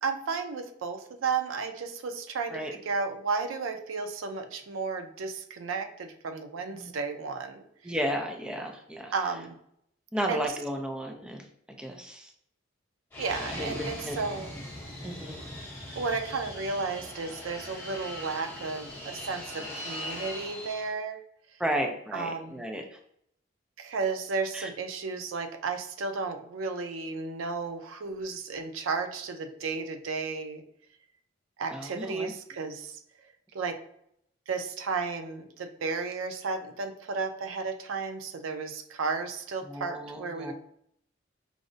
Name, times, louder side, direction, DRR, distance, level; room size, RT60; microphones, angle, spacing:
voice 1, 0.0-7.9 9.1-9.6 10.3-10.5 13.2-14.6 16.0-21.2 22.1-22.6 23.8-30.6 31.6-33.0 33.5-33.8 34.5-40.5, right 4 dB, 90° right, 7 dB, 0.4 m, -33 dB
voice 2, 7.8-9.1 10.1-11.4 11.8-12.3 13.5-14.2 15.0-15.5 21.6-22.8 24.5-24.7 31.7-32.3 39.6-40.5, equal, 5° right, 3 dB, 0.4 m, -33 dB
Fixed-wing aircraft airplane, 13.1-20.9, left 1 dB, 10° left, 0.8 m, -40 dB
4.7 x 2.1 x 2.5 m, 0.71 s
head